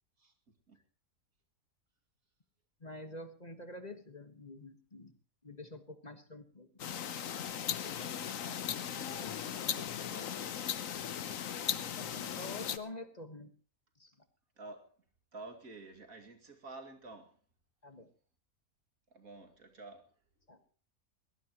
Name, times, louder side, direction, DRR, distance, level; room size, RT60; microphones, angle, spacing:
voice 1, 2.8-5.2 5.4-7.2 7.8-8.3 12.0-13.5 14.0-14.1 17.8-18.1 20.5-20.6, left 2 dB, 30° left, 1.5 m, -48 dB
sound 1, 6.8-12.8, left 9 dB, 70° left, 1.3 m, -37 dB
voice 2, 8.9-10.4 10.6-10.8 14.6-14.9 15.3-17.4 19.1-20.1, right 3 dB, 80° right, 2.8 m, -51 dB
22.5 x 18.0 x 3.0 m
omnidirectional pair, 1.5 m